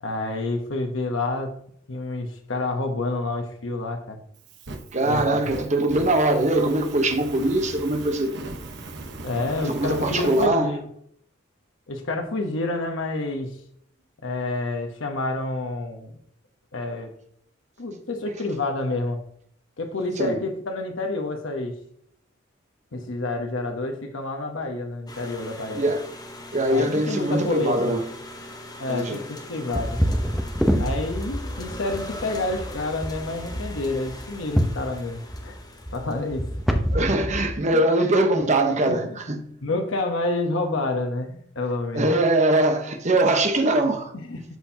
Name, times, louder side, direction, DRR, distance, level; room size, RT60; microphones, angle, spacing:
voice 1, 0.0-1.6 1.9-4.2 5.0-5.2 9.2-10.8 11.9-13.6 14.2-16.1 16.7-17.1 17.8-19.2 19.8-21.7 22.9-25.8 26.7-27.9 28.8-30.0 30.8-35.6 35.9-36.5 37.7-37.8 38.8-39.2 39.6-42.2 44.1-44.4, left 2 dB, 85° left, 1.0 m, -28 dB
Fire, 4.4-10.5, right 2 dB, 60° right, 1.1 m, -38 dB
voice 2, 4.9-8.4 9.6-10.8 20.2-20.4 25.7-26.1 26.5-28.1 28.9-29.2 36.9-39.4 41.9-44.1, right 1 dB, 35° right, 1.0 m, -22 dB
sound 1, 25.1-37.1, left 1 dB, 20° left, 0.9 m, -41 dB
sound 2, 29.7-37.5, equal, ahead, 0.7 m, -27 dB
13.0 x 4.4 x 2.8 m
head